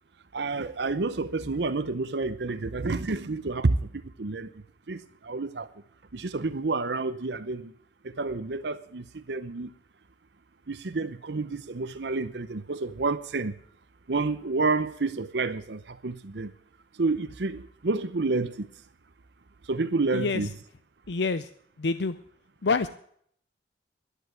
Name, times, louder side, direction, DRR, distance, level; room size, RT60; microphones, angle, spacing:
voice 1, 0.3-4.5 4.9-5.7 6.1-7.7 8.0-9.7 10.7-13.5 14.1-16.5 16.9-18.7 19.6-20.5, right 3 dB, 70° right, 0.7 m, -29 dB
voice 2, 21.1-21.5 21.8-22.2 22.6-22.9, left 4 dB, 70° left, 0.6 m, -26 dB
11.0 x 11.0 x 8.0 m
head